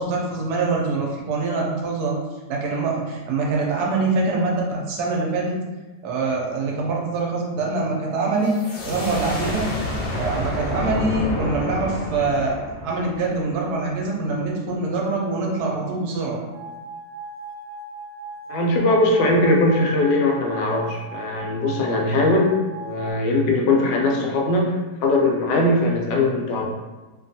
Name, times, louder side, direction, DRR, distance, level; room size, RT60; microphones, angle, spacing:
voice 1, 0.0-2.2 2.5-5.6 6.0-8.5 8.8-9.7 10.1-12.6 12.8-16.4, right 3 dB, 70° right, -2 dB, 1.0 m, -24 dB
sound 1, 8.4-14.0, left 1 dB, 70° left, 1.1 m, -29 dB
sound 2, 16.5-23.1, right 3 dB, 20° left, 0.9 m, -37 dB
voice 2, 18.5-26.7, left 2 dB, 90° left, 0 dB, 1.2 m, -20 dB
2.8 x 2.3 x 2.6 m, 1.2 s
omnidirectional pair, 1.8 m